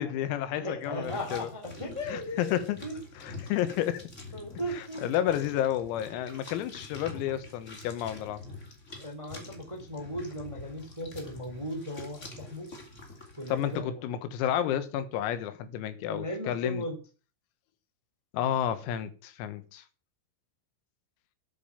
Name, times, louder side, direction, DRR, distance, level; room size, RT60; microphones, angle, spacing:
voice 1, 0.0-1.5 2.1-2.8 3.2-4.1 4.8-8.4 13.5-16.9 18.3-19.8, left 11 dB, 90° left, 4.1 m, -31 dB
voice 2, 0.5-3.0 4.3-5.0 9.0-12.7 13.3-14.0 16.1-17.0, equal, 10° right, 1.4 m, -37 dB
sound 1, 0.8-13.8, left 3 dB, 25° left, 1.6 m, -46 dB
11.0 x 8.5 x 7.1 m
omnidirectional pair, 6.0 m